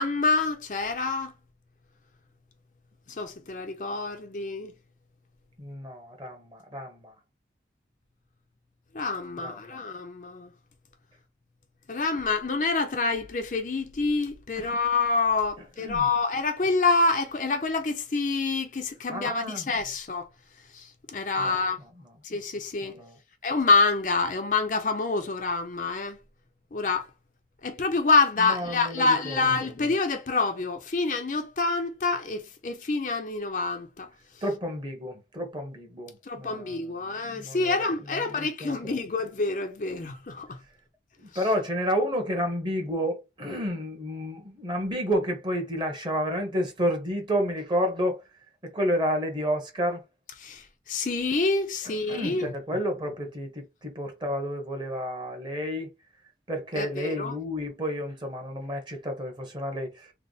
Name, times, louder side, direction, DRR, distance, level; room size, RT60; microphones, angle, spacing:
voice 1, 0.0-1.3 3.1-4.7 8.9-10.5 11.9-20.3 20.7-21.8 22.2-22.9 23.4-26.2 26.7-27.1 27.6-34.1 36.3-40.6 50.4-52.5 56.7-57.4, left 3 dB, 45° left, 0.6 m, -27 dB
voice 2, 5.6-7.1 9.4-9.6 14.6-14.7 15.8-16.0 19.1-19.7 21.4-21.6 22.8-23.1 28.4-29.4 34.4-37.7 38.1-39.0 41.2-48.2 48.6-50.0 52.1-55.9 56.5-60.1, equal, 25° right, 1.1 m, -30 dB
3.4 x 2.1 x 3.9 m
head